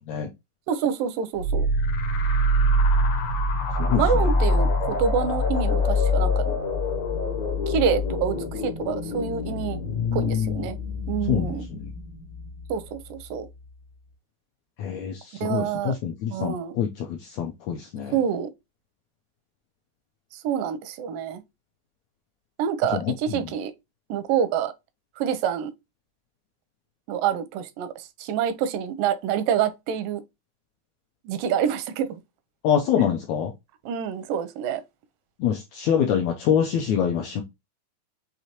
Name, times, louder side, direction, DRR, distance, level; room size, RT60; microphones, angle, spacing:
voice 1, 0.7-1.7 4.0-6.6 7.7-9.8 10.1-10.8 11.1-11.7 12.7-13.5 15.4-16.0 16.3-16.8 18.1-18.5 20.3-21.4 22.6-23.7 24.1-24.7 25.2-25.7 27.1-30.2 31.3-32.2 33.9-34.8, right 8 dB, 85° right, 2.2 m, -27 dB
sound 1, 1.4-12.7, left 1 dB, 70° left, 1.8 m, -25 dB
voice 2, 3.8-4.2 9.9-10.6 11.3-11.9 14.8-18.1 22.9-23.5 32.6-33.5 35.4-37.4, left 8 dB, 90° left, 1.6 m, -25 dB
6.4 x 2.8 x 2.8 m
omnidirectional pair, 3.9 m